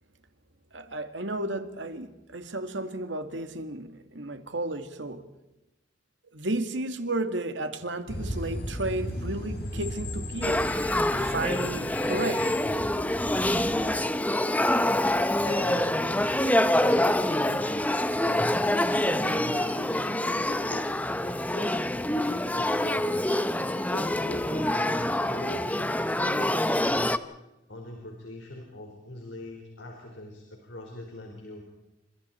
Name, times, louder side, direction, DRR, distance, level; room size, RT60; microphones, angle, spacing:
voice 1, 0.7-5.3 6.3-10.7 11.1-12.5, right 2 dB, 85° right, 2.2 m, -33 dB
sound 1, 8.1-14.0, left 1 dB, 60° left, 5.9 m, -36 dB
Male speech man speaking / Child speech kid speaking / Conversation, 10.4-27.2, left 1 dB, 10° left, 0.9 m, -26 dB
voice 2, 15.4-16.3 16.7-18.4 18.9-21.8 22.5-23.5 23.8-27.1 27.7-31.6, left 1 dB, 80° left, 4.7 m, -41 dB
29.5 x 26.5 x 4.5 m
head